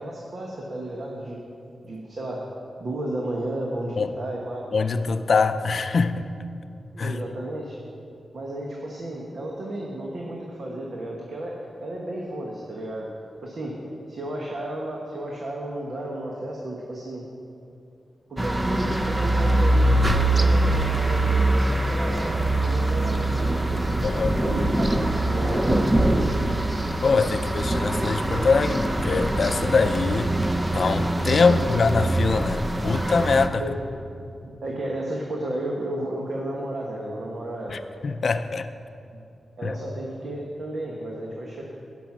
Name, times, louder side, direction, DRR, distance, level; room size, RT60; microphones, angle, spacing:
voice 1, 0.0-1.4 1.8-2.5 2.8-4.7 6.9-7.8 8.3-13.1 13.4-13.8 14.1-17.2 18.3-23.8 24.4-25.9 31.4-31.8 33.6-33.7 34.4-37.8 39.6-41.6, right 1 dB, 50° right, 1.3 m, -33 dB
voice 2, 4.7-6.2 7.0-7.2 24.0-24.4 27.0-30.3 30.7-33.6 37.7-38.7 39.6-39.8, left 4 dB, 50° left, 0.5 m, -23 dB
sound 1, 18.4-33.5, right 1 dB, 15° right, 0.5 m, -23 dB
16.5 x 6.1 x 6.0 m
wide cardioid pair, 170°, 0 cm